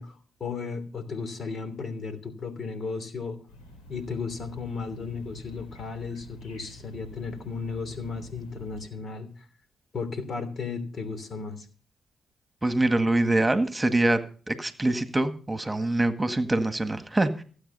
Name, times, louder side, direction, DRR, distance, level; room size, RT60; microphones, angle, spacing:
voice 1, 0.0-3.4 3.9-9.5 9.9-11.7, left 4 dB, 55° left, 10 dB, 3.0 m, -35 dB
sound 1, 3.5-8.8, left 2 dB, 85° left, 4.1 m, -47 dB
voice 2, 12.6-14.2 14.5-17.4, right 2 dB, 20° right, 9 dB, 1.8 m, -24 dB
16.0 x 8.5 x 5.5 m, 0.41 s
supercardioid pair, 50°, 0 cm